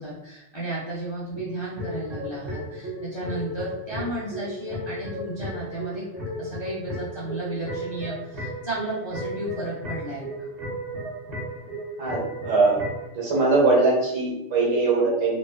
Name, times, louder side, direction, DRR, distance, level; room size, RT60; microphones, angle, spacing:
voice 1, 0.0-6.1 6.4-10.5, right 1 dB, 35° left, -8 dB, 0.4 m, -33 dB
sound 1, 1.3-13.1, equal, 35° right, 1.0 m, -34 dB
voice 2, 12.0-12.8 13.1-15.4, right 3 dB, 85° right, -4 dB, 1.3 m, -21 dB
2.9 x 2.2 x 2.2 m, 0.83 s
omnidirectional pair, 1.3 m